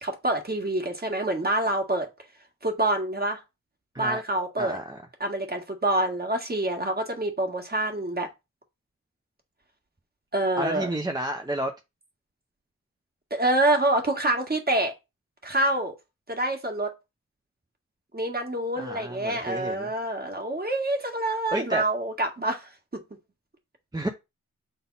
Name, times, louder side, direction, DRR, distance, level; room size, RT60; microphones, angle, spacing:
voice 1, 0.0-2.1 2.6-3.4 4.0-4.8 5.2-8.3 10.3-10.9 13.3-14.9 15.4-16.0 16.3-16.9 18.1-22.7, right 1 dB, 30° right, 1.9 m, -26 dB
voice 2, 4.6-5.0 10.6-11.7 18.8-19.9 21.5-21.8 23.9-24.1, right 1 dB, 15° right, 0.8 m, -30 dB
7.1 x 3.9 x 4.1 m
wide cardioid pair, 85°, 31 cm